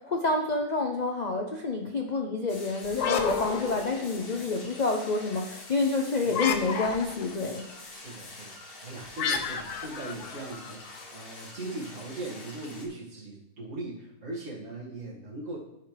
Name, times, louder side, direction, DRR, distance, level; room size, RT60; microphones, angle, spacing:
voice 1, 0.0-7.6, left 3 dB, 55° left, 2 dB, 0.4 m, -28 dB
sound 1, 2.5-12.9, left 2 dB, 40° left, 1.3 m, -46 dB
sound 2, 2.8-4.4 6.3-7.3 9.2-11.0, left 6 dB, 70° left, 1.3 m, -31 dB
voice 2, 7.9-15.6, right 2 dB, 45° right, -9 dB, 2.4 m, -39 dB
14.5 x 5.0 x 3.4 m, 0.84 s
omnidirectional pair, 1.7 m